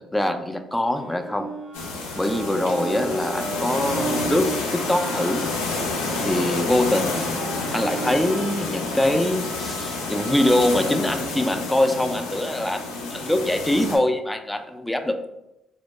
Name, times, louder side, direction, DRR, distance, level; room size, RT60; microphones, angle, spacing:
voice 1, 0.1-1.5 2.1-5.4 6.2-7.4 7.7-15.3, left 1 dB, 10° left, 7 dB, 0.3 m, -23 dB
sound 1, 0.8-11.1, right 2 dB, 80° right, 0.5 m, -36 dB
sound 2, 1.7-14.0, left 3 dB, 90° left, 0.4 m, -29 dB
2.0 x 2.0 x 3.1 m, 0.89 s
hypercardioid pair, 55°, 0 cm